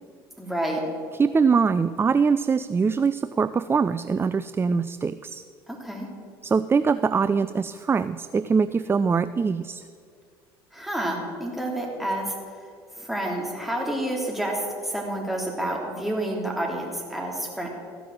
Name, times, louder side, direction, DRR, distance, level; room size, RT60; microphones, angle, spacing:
voice 1, 0.4-0.8 5.7-6.1 10.7-12.3 13.0-17.7, right 1 dB, ahead, -2 dB, 3.1 m, -29 dB
voice 2, 1.2-5.4 6.4-9.8, right 5 dB, 20° right, 14 dB, 0.3 m, -23 dB
14.5 x 6.0 x 7.3 m, 2.2 s
hypercardioid pair, 75°, 12 cm